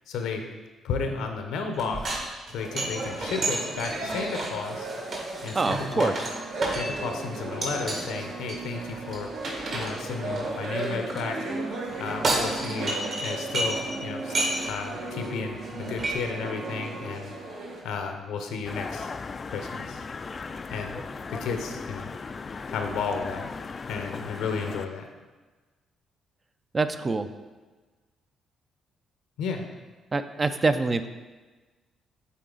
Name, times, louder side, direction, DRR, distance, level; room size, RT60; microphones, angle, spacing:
voice 1, 0.1-0.4 0.8-2.2 2.5-4.9 5.4-6.1 6.7-9.3 9.7-11.4 12.0-14.3 14.6-17.4 17.8-19.1 19.5-20.0 20.7-21.0 21.3-22.1 22.7-23.6 23.9-25.1 29.4-29.7, left 5 dB, 90° left, 4 dB, 0.8 m, -33 dB
sound 1, 1.7-7.2 7.6-8.0 8.5-11.2 11.9-13.9 14.2-14.8 15.2-15.3 15.6-16.1, right 2 dB, 55° right, 1.9 m, -32 dB
sound 2, 2.6-17.8, right 2 dB, 75° right, 1.5 m, -35 dB
voice 2, 5.5-6.1 26.7-27.3 30.1-31.1, right 3 dB, 30° right, 10 dB, 0.4 m, -25 dB
sound 3, 18.6-24.9, left 4 dB, 40° left, 0.3 m, -37 dB
8.4 x 4.1 x 3.9 m, 1.3 s
cardioid pair, 90°, 0 cm